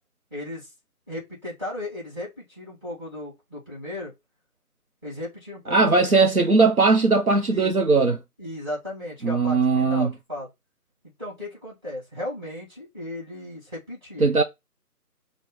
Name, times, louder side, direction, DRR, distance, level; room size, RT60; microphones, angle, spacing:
voice 1, 0.3-0.7 1.1-4.1 5.0-6.1 7.5-7.7 8.4-10.5 11.2-14.3, left 1 dB, 15° right, 2.4 m, -35 dB
voice 2, 5.7-8.2 9.2-10.1 14.2-14.4, right 3 dB, 65° right, 0.8 m, -19 dB
4.5 x 2.2 x 3.9 m
figure-of-eight pair, 160°, 47 cm